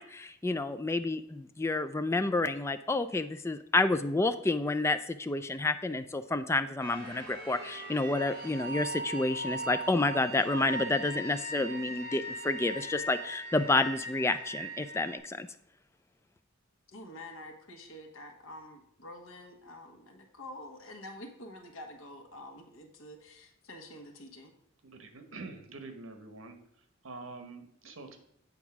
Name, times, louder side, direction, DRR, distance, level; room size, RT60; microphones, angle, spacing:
voice 1, 0.0-15.5, left 2 dB, 15° left, 10 dB, 0.3 m, -29 dB
sound 1, 6.8-15.2, right 1 dB, 50° right, 2.6 m, -40 dB
voice 2, 16.9-24.5, left 1 dB, 90° left, 5 dB, 1.2 m, -47 dB
voice 3, 24.8-26.6 27.0-28.2, right 3 dB, 80° right, 6 dB, 1.1 m, -45 dB
8.0 x 3.6 x 5.9 m, 0.74 s
head